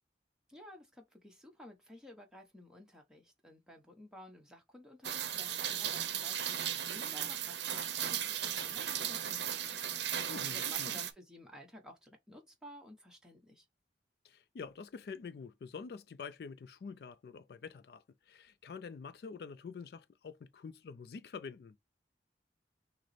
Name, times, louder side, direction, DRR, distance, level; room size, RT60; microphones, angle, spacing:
voice 1, 0.5-13.6, left 1 dB, 5° right, 0.9 m, -54 dB
Rain, 5.0-11.1, right 10 dB, 75° right, 0.6 m, -36 dB
voice 2, 10.3-11.0 14.2-21.8, left 5 dB, 60° left, 0.3 m, -47 dB
6.1 x 2.0 x 4.1 m
head